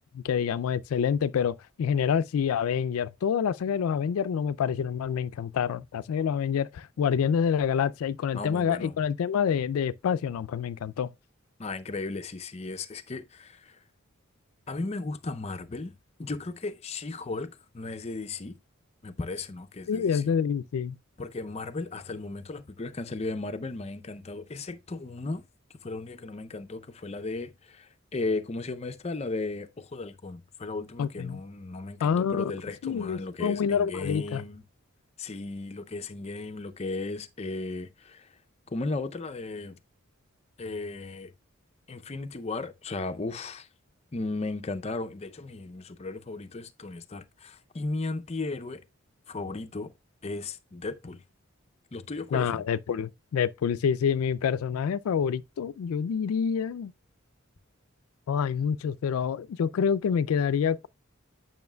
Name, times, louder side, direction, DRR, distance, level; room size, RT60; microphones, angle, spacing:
voice 1, 0.1-11.1 19.9-21.0 31.0-31.4 32.0-32.5 32.8-34.4 52.3-56.9 58.3-60.9, left 7 dB, 90° left, 0.3 m, -27 dB
voice 2, 8.3-8.9 11.6-13.8 14.7-15.9 16.2-18.6 19.0-20.3 21.2-25.4 25.8-34.6 35.2-38.4 38.7-39.8 40.6-41.3 41.9-43.7 44.1-48.8 49.3-49.9 50.2-51.2 51.9-52.6, left 3 dB, 30° left, 0.5 m, -35 dB
9.4 x 5.5 x 2.2 m
head